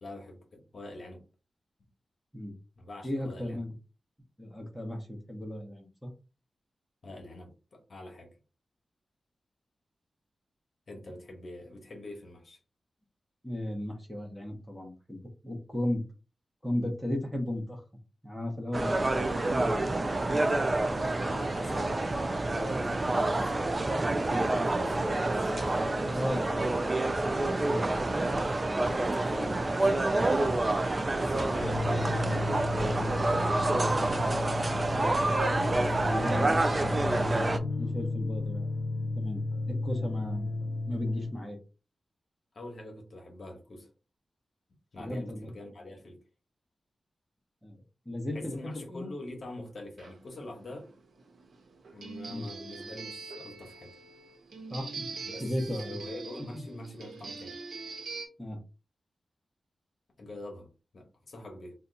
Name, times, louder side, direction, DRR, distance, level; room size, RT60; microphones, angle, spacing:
voice 1, 0.0-1.2 2.8-3.6 7.0-8.3 10.9-12.6 21.2-21.9 22.5-26.7 28.8-30.1 30.4-30.5 31.2-32.3 35.8-36.4 42.5-43.9 44.9-46.2 48.3-50.9 51.9-53.9 55.2-55.4 55.8-57.6 60.2-60.7 60.9-61.7, left 1 dB, 50° left, 1.0 m, -44 dB
voice 2, 3.0-3.7 4.4-6.1 13.4-16.0 16.6-17.8 18.2-19.5 26.1-26.7 27.6-27.8 29.3-29.7 31.8-32.1 33.7-34.1 35.7-36.6 37.1-38.7 39.2-39.4 39.7-40.5 40.9-41.6 45.0-45.5 47.6-47.8 48.1-49.1 52.3-52.5 54.7-56.0 56.5-56.6 58.4-58.6, left 1 dB, 5° left, 0.8 m, -35 dB
sound 1, 18.7-37.6, right 2 dB, 25° right, 0.3 m, -28 dB
sound 2, 31.6-41.3, left 2 dB, 90° left, 0.6 m, -33 dB
sound 3, 50.0-58.3, right 3 dB, 80° right, 0.7 m, -43 dB
2.8 x 2.3 x 3.9 m
wide cardioid pair, 160°, 0 cm